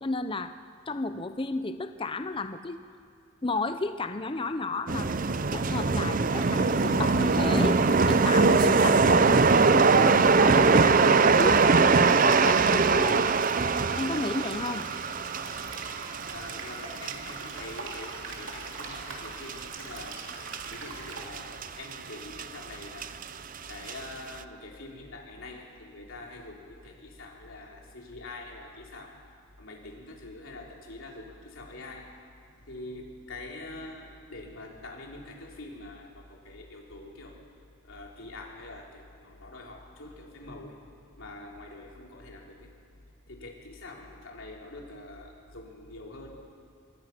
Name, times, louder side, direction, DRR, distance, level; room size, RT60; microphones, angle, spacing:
voice 1, 0.0-0.5 0.9-2.8 3.4-7.8 8.1-13.3 14.0-14.9, left 3 dB, 25° left, 9 dB, 0.5 m, -32 dB
sound 1, 4.9-20.7 21.2-21.7 21.9-23.2 23.7-24.0, right 4 dB, 40° right, 0.6 m, -22 dB
sound 2, 6.2-21.2, right 3 dB, 65° right, 3.3 m, -43 dB
voice 2, 16.3-20.2 20.7-23.2 23.7-29.1 29.6-32.1 32.5-37.4 37.8-40.8 41.2-42.7 43.3-46.5, left 2 dB, 70° left, -1 dB, 3.5 m, -44 dB
26.0 x 19.0 x 6.0 m, 2.3 s
head